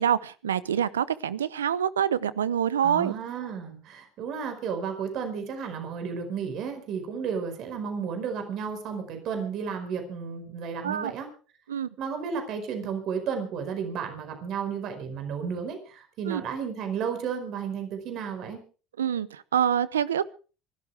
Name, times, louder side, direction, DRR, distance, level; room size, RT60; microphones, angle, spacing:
voice 1, 0.0-3.1 10.8-11.1 11.7-11.9 16.2-16.4 19.0-20.3, right 9 dB, 90° right, 18 dB, 0.7 m, -26 dB
voice 2, 2.8-11.3 12.0-18.6, right 6 dB, 60° right, 6 dB, 4.8 m, -33 dB
25.0 x 12.5 x 3.5 m, 0.36 s
hypercardioid pair, 65°, 0 cm